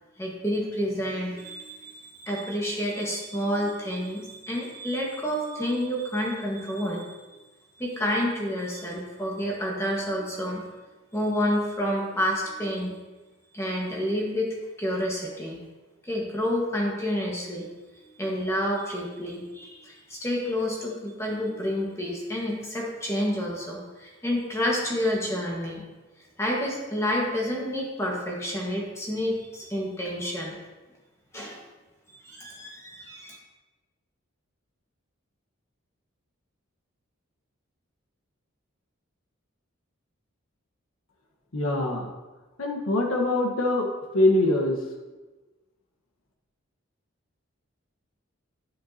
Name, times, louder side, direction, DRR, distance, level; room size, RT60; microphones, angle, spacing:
voice 1, 0.2-7.2 7.8-10.6 11.1-13.0 13.5-15.6 16.0-17.7 18.2-25.8 26.4-30.6 31.3-31.6 32.2-33.4, equal, 15° left, -2 dB, 1.4 m, -29 dB
voice 2, 41.5-42.1 42.6-43.9 44.1-44.7, left 2 dB, 85° left, 1 dB, 1.2 m, -23 dB
9.8 x 7.3 x 2.8 m, 1.2 s
head